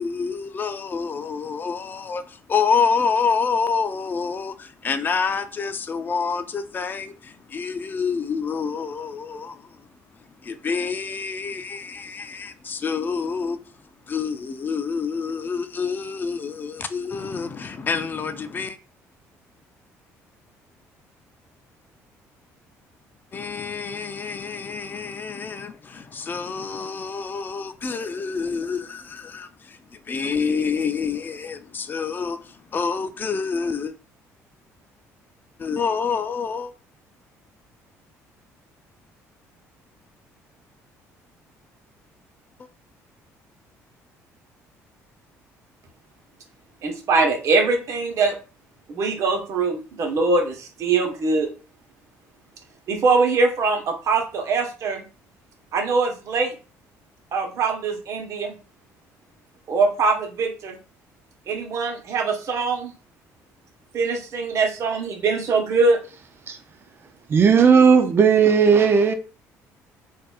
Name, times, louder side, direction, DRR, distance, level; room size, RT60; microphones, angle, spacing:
voice 1, 0.0-9.8 10.4-13.6 14.1-18.8 23.3-29.8 30.1-33.9 35.6-36.7, left 5 dB, 30° left, 0.5 m, -27 dB
voice 2, 46.8-48.3 48.9-51.5 52.9-55.0 55.7-56.5 57.3-58.5 59.7-60.8 61.5-62.9 63.9-66.0, right 4 dB, 55° right, 1.0 m, -22 dB
voice 3, 67.3-69.1, right 6 dB, 40° right, 0.5 m, -15 dB
4.0 x 2.6 x 2.3 m
cardioid pair, 95°, 6 cm